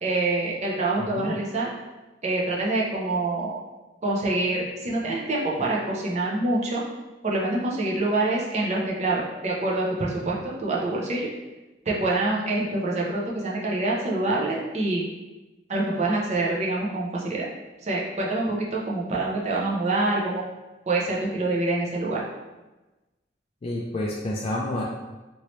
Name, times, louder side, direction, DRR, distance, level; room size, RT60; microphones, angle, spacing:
voice 1, 0.0-1.7 2.2-3.6 4.0-6.8 7.2-11.3 11.9-15.0 15.7-17.5 17.8-20.4 20.9-22.2, right 2 dB, 40° right, -3 dB, 0.6 m, -26 dB
voice 2, 1.0-1.4 23.6-24.8, left 1 dB, 35° left, -4 dB, 0.3 m, -29 dB
3.0 x 2.8 x 3.0 m, 1.1 s
head